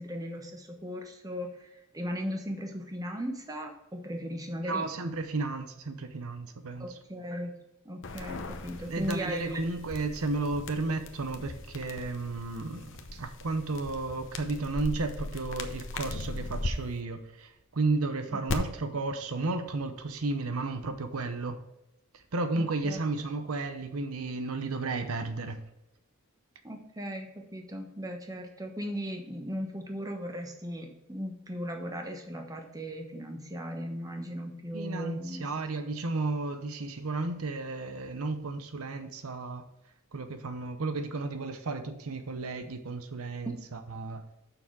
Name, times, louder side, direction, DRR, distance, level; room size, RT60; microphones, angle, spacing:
voice 1, 0.0-4.9 6.8-7.5 7.8-9.6 22.5-23.0 26.6-35.5 43.4-43.6, equal, 15° right, 3 dB, 1.2 m, -37 dB
voice 2, 4.6-7.0 8.9-21.6 22.1-25.6 34.7-39.6 40.1-44.2, right 3 dB, 75° right, 8 dB, 0.8 m, -33 dB
sound 1, 8.0-16.7 18.5-18.6, left 3 dB, 60° left, 0.8 m, -39 dB
6.9 x 6.0 x 4.7 m, 0.92 s
head